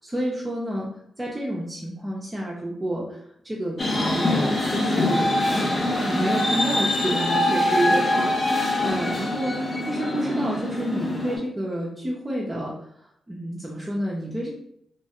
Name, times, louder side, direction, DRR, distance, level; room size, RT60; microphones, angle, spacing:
voice 1, 0.0-0.9 1.2-4.3 4.7-8.3 8.8-14.5, right 1 dB, 20° right, -4 dB, 0.6 m, -29 dB
sound 1, 3.8-11.4, left 1 dB, 45° left, 0.8 m, -24 dB
3.1 x 2.2 x 2.8 m, 0.74 s
cardioid pair, 75°, 0 cm